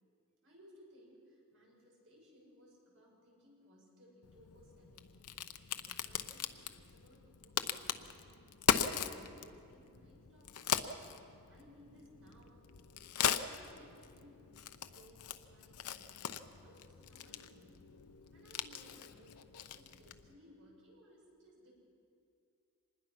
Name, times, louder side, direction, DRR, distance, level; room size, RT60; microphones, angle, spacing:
voice 1, 0.4-5.1 5.7-8.5 8.9-12.7 13.5-14.4 14.9-16.2 16.6-17.8 18.3-19.5 19.7-21.7, equal, 60° right, -2 dB, 6.4 m, -62 dB
Crack, 4.2-20.3, left 8 dB, 90° left, 0.8 m, -40 dB
25.5 x 20.5 x 6.0 m, 2.4 s
head